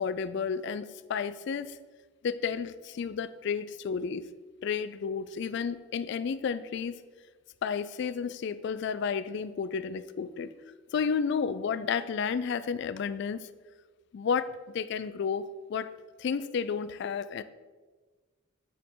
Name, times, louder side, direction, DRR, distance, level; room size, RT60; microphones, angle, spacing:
voice 1, 0.0-1.8 2.2-4.3 4.6-6.9 7.6-10.5 10.9-13.5 14.1-15.9 16.2-17.4, left 6 dB, 60° left, 14 dB, 0.3 m, -32 dB
9.9 x 4.9 x 3.7 m, 1.3 s
head